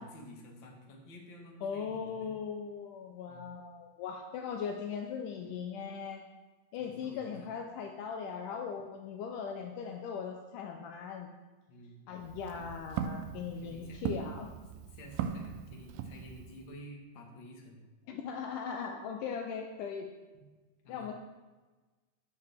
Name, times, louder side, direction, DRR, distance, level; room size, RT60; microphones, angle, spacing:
voice 1, 0.0-2.3 3.3-3.6 6.8-7.5 11.7-12.2 12.5-12.7 13.6-14.0 14.7-17.8 20.8-21.1, equal, 50° left, 0 dB, 1.5 m, -51 dB
voice 2, 1.6-6.2 6.7-11.3 12.1-14.5 18.1-20.1 20.9-21.1, left 6 dB, 90° left, 3 dB, 1.8 m, -39 dB
Walk footsteps, 12.1-16.7, right 8 dB, 90° right, 1.9 m, -39 dB
14.0 x 6.7 x 3.5 m, 1.3 s
omnidirectional pair, 4.5 m